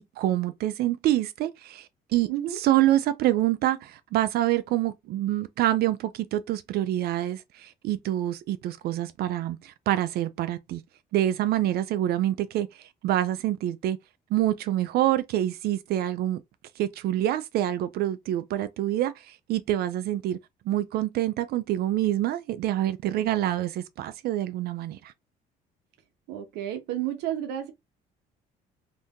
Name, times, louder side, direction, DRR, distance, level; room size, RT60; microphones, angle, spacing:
voice 1, 0.0-10.8 11.1-14.0 14.3-16.4 16.8-20.4 20.7-25.1, right 13 dB, 70° right, 0.4 m, -26 dB
voice 2, 2.3-2.6 26.3-27.7, right 11 dB, 85° right, 0.8 m, -31 dB
2.7 x 2.5 x 3.5 m
cardioid pair, 110°, 17 cm